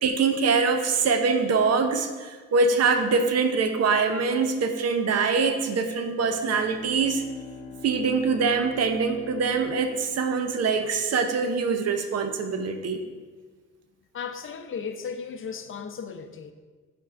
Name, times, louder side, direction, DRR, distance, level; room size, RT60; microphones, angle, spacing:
voice 1, 0.0-7.2 7.8-13.0, right 4 dB, 55° right, 7 dB, 0.7 m, -24 dB
Bowed string instrument, 6.2-10.8, left 4 dB, 20° left, 1.1 m, -43 dB
voice 2, 14.1-16.5, left 6 dB, 45° left, 7 dB, 0.6 m, -35 dB
5.9 x 3.6 x 5.6 m, 1.4 s
cardioid pair, 90°, 30 cm